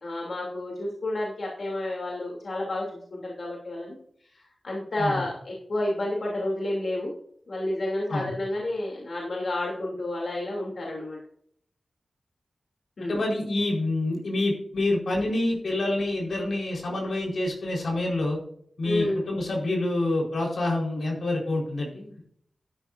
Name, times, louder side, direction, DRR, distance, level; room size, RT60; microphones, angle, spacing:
voice 1, 0.0-4.0 4.3-7.1 7.5-11.2 13.0-13.2 18.8-19.2, left 1 dB, 65° left, -3 dB, 2.9 m, -30 dB
voice 2, 13.0-18.4 18.8-22.2, left 2 dB, 90° left, -1 dB, 4.3 m, -27 dB
12.5 x 11.0 x 2.6 m, 0.64 s
wide cardioid pair, 100°, 0 cm